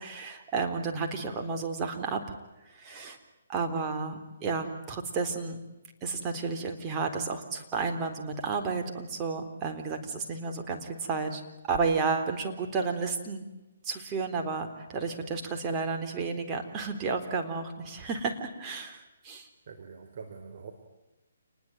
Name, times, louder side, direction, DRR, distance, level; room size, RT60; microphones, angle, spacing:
voice 1, 0.0-2.2 2.8-3.2 3.5-5.6 6.0-11.4 11.7-13.4 13.8-19.5, right 4 dB, 20° right, 4 dB, 3.9 m, -32 dB
voice 2, 19.7-20.7, right 5 dB, 55° right, 5 dB, 4.2 m, -44 dB
29.0 x 21.0 x 9.2 m, 0.98 s
hypercardioid pair, 150°, 0 cm